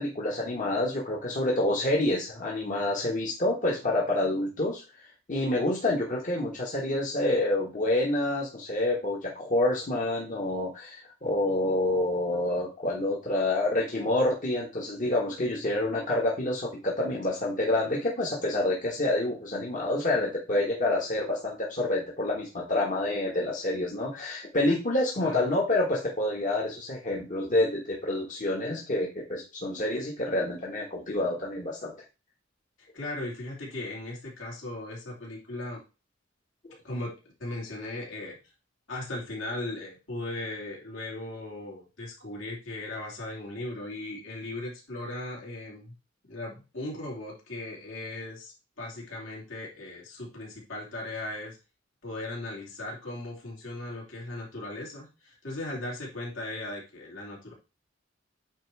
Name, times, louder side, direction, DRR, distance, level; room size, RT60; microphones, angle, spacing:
voice 1, 0.0-32.0, left 1 dB, 40° left, -3 dB, 1.4 m, -28 dB
voice 2, 25.2-25.6 32.9-35.8 36.8-38.4 38.9-45.9 46.3-51.6 52.0-57.5, left 2 dB, 75° left, -4 dB, 3.4 m, -37 dB
8.9 x 3.0 x 4.7 m, 0.31 s
head